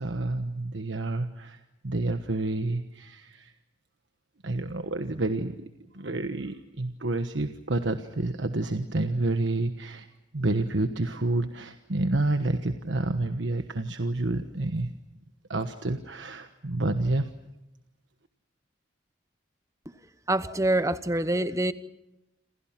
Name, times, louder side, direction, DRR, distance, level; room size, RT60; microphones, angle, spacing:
voice 1, 0.0-3.5 4.4-5.6 5.9-10.1 10.3-14.9 15.5-17.3, right 2 dB, 80° right, 1.3 m, -29 dB
voice 2, 20.3-21.7, right 1 dB, 15° right, 1.0 m, -25 dB
28.5 x 27.5 x 6.0 m
head